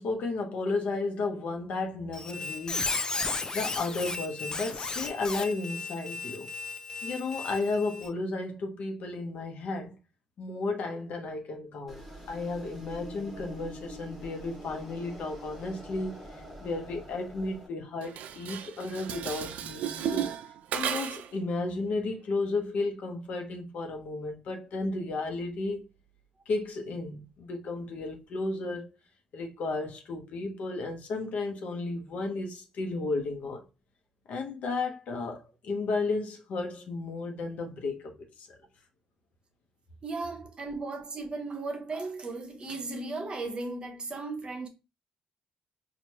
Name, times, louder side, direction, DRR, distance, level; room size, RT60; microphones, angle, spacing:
voice 1, 0.0-2.9 3.5-6.5 7.0-9.9 10.4-16.3 16.6-20.3 20.7-25.9 26.5-28.9 29.3-33.6 34.3-38.6, left 3 dB, 65° left, 0.9 m, -33 dB
Squeak, 2.1-8.1, left 3 dB, 30° left, 0.5 m, -35 dB
sound 1, 11.9-17.7, equal, 5° right, 1.3 m, -45 dB
Dishes pots and pans, 18.0-21.4, right 9 dB, 75° right, 0.3 m, -34 dB
voice 2, 40.0-44.7, right 3 dB, 40° right, 0.9 m, -36 dB
4.5 x 2.5 x 2.9 m
cardioid pair, 80°, 3 cm